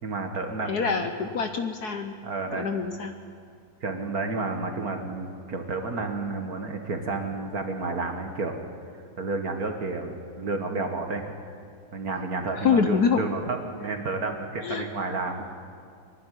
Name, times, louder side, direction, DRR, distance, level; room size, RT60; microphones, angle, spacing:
voice 1, 0.0-1.1 2.2-2.7 3.8-8.5 9.2-11.4 11.9-15.5, right 3 dB, 45° right, 4 dB, 1.9 m, -31 dB
voice 2, 0.7-2.2 2.5-3.1 12.5-13.2 14.6-14.8, left 6 dB, 60° left, 6 dB, 1.2 m, -25 dB
23.5 x 11.5 x 9.9 m, 2.2 s
omnidirectional pair, 2.3 m